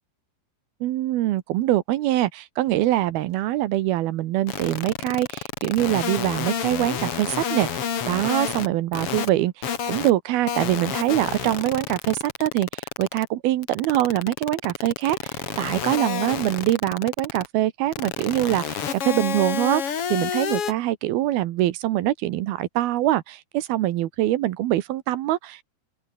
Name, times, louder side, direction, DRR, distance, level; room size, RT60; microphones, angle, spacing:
voice 1, 0.8-7.7 8.1-25.6, right 14 dB, 75° right, 2.8 m, -24 dB
sound 1, 4.5-8.7 8.9-9.3 9.6-10.1 10.5-13.2 13.6-17.5 17.9-20.7, left 8 dB, 45° left, 2.2 m, -29 dB
open air
omnidirectional pair, 4.8 m